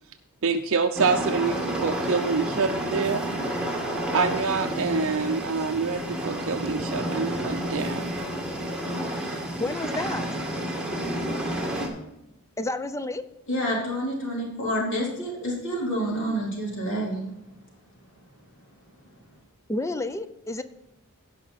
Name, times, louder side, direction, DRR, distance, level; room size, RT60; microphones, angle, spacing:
voice 1, 0.4-3.2 4.1-8.1 9.1-9.4, right 5 dB, 60° right, 5 dB, 0.6 m, -26 dB
sound 1, 1.0-11.9, right 1 dB, 5° right, 1.8 m, -30 dB
voice 2, 9.6-10.3 12.6-13.2 19.7-20.6, left 2 dB, 15° left, 11 dB, 0.5 m, -30 dB
voice 3, 13.5-17.2, equal, 55° left, -3 dB, 3.7 m, -28 dB
16.5 x 5.7 x 4.1 m, 0.90 s
head